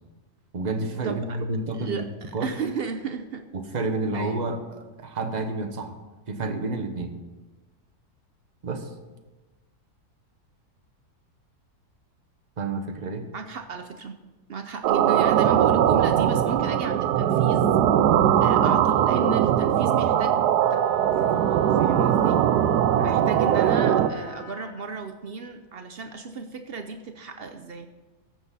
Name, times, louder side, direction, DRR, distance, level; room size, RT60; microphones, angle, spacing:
voice 1, 0.5-2.1 2.3-2.5 3.5-5.9 6.3-7.2 8.6-8.9 12.6-13.3 22.9-23.2, right 2 dB, 35° right, 6 dB, 0.8 m, -30 dB
voice 2, 1.0-1.4 1.7-3.5 4.1-4.5 13.3-14.2 14.5-17.7 18.4-20.3 20.7-20.8 21.1-22.4 23.0-27.9, right 5 dB, 65° right, 6 dB, 0.6 m, -34 dB
sound 1, 14.8-24.1, right 10 dB, 80° right, 1.2 m, -20 dB
Wind instrument woodwind instrument, 20.6-24.8, left 2 dB, 30° left, 0.8 m, -44 dB
14.0 x 7.6 x 4.1 m, 1.2 s
omnidirectional pair, 1.7 m